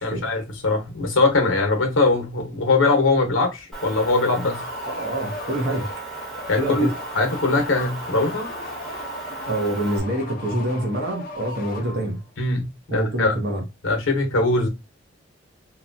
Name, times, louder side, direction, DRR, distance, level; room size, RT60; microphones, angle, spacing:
voice 1, 0.0-4.6 6.5-6.9 7.1-8.5 12.4-13.3 13.8-14.7, left 3 dB, 75° left, 0.9 m, -21 dB
Motor vehicle (road) / Engine, 3.7-10.0, right 3 dB, ahead, 0.7 m, -36 dB
sound 1, 4.0-12.3, left 2 dB, 45° left, 0.6 m, -37 dB
voice 2, 4.9-5.9 6.6-6.9 9.5-12.2 12.9-13.6, right 1 dB, 55° right, 0.8 m, -26 dB
2.9 x 2.2 x 2.5 m
head